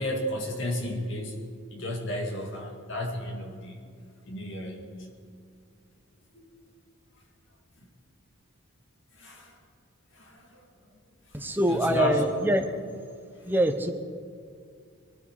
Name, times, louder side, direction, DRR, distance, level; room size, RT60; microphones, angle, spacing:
voice 1, 0.0-1.4 1.7-3.8 4.3-5.1 6.3-6.5 9.2-9.6 10.1-10.6 11.7-12.2, left 1 dB, 60° left, 2 dB, 2.2 m, -33 dB
voice 2, 11.3-12.7 13.5-13.9, right 1 dB, 10° right, 6 dB, 0.9 m, -24 dB
21.5 x 13.0 x 4.8 m, 2.3 s
head